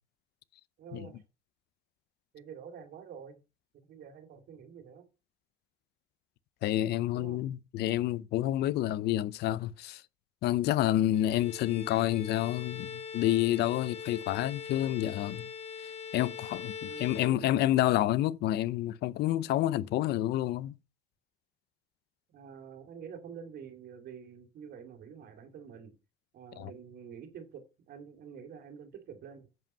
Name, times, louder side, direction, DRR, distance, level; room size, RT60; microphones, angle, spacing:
voice 1, 0.8-1.2 2.3-3.4 3.9-5.1 7.1-7.4 16.8-17.5 22.3-25.9 26.3-29.5, right 7 dB, 65° right, 2.7 m, -47 dB
voice 2, 6.6-10.0 10.4-15.5 16.1-20.8 26.6-26.7, left 14 dB, 75° left, 0.6 m, -29 dB
Bowed string instrument, 11.1-17.9, left 7 dB, 40° left, 1.3 m, -42 dB
7.8 x 7.5 x 5.4 m
cardioid pair, 110°, 17 cm